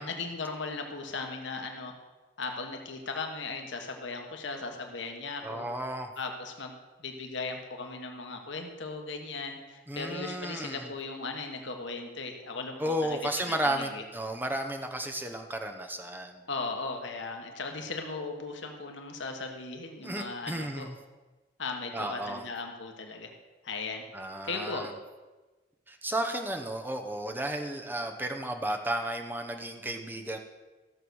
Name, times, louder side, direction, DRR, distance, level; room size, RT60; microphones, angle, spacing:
voice 1, 0.0-1.9 2.4-5.7 6.2-13.2 13.5-14.0 16.5-20.9 21.6-23.3 23.6-24.0 24.4-24.8, left 3 dB, 75° left, 3 dB, 1.4 m, -37 dB
voice 2, 5.4-6.1 9.9-10.9 12.8-16.4 20.0-20.9 21.9-22.5 24.1-24.9 25.9-30.4, right 1 dB, 10° right, 4 dB, 0.9 m, -33 dB
14.0 x 6.8 x 6.3 m, 1.2 s
head